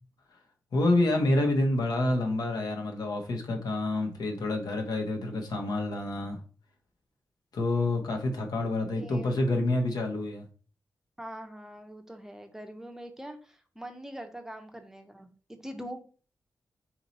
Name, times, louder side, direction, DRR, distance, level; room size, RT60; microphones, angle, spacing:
voice 1, 0.7-6.4 7.5-10.4, left 2 dB, 80° left, 3 dB, 1.1 m, -28 dB
voice 2, 8.9-9.4 11.2-16.0, equal, 5° right, 5 dB, 0.6 m, -43 dB
4.4 x 2.9 x 4.0 m, 0.38 s
wide cardioid pair, 155°, 7 cm